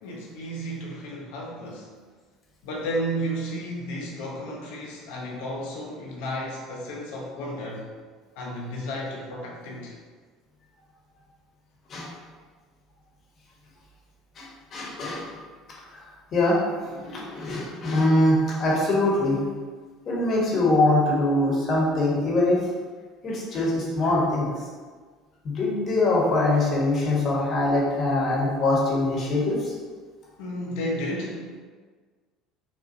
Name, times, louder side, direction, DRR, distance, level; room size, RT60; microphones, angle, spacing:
voice 1, 0.0-1.9 2.6-7.9 8.4-10.0 30.4-31.6, equal, 70° left, -2 dB, 0.7 m, -33 dB
voice 2, 14.7-15.3 15.9-16.0 16.3-19.4 20.1-22.6 23.2-24.5 25.4-29.7, left 2 dB, 45° left, -4 dB, 1.0 m, -23 dB
4.2 x 2.1 x 2.6 m, 1.5 s
hypercardioid pair, 65°, 0 cm